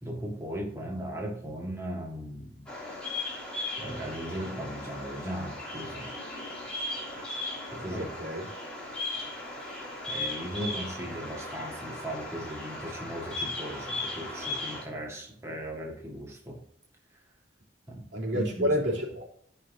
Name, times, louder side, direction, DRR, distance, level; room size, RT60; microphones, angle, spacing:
voice 1, 0.0-2.7 3.8-6.1 7.7-8.1 9.5-16.6 17.9-18.1 18.3-18.8, equal, 15° right, -2 dB, 1.7 m, -37 dB
Bird vocalization bird call bird song, 2.7-14.8, left 2 dB, 5° left, 3.2 m, -37 dB
voice 2, 7.9-8.5 18.1-19.3, equal, 75° right, -3 dB, 3.6 m, -29 dB
14.0 x 5.6 x 2.7 m, 0.64 s
head